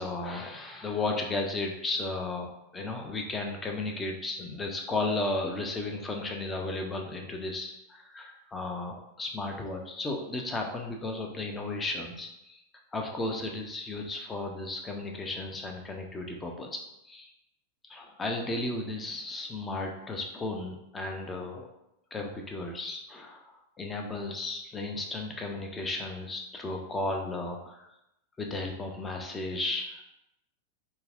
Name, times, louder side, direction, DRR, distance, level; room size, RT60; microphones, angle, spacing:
voice 1, 0.0-2.5 2.7-12.6 12.9-16.7 17.0-17.3 17.9-21.7 22.1-27.9 28.4-30.0, left 2 dB, 15° left, 2 dB, 0.5 m, -34 dB
5.4 x 2.0 x 2.4 m, 0.84 s
figure-of-eight pair, 90°, 0 cm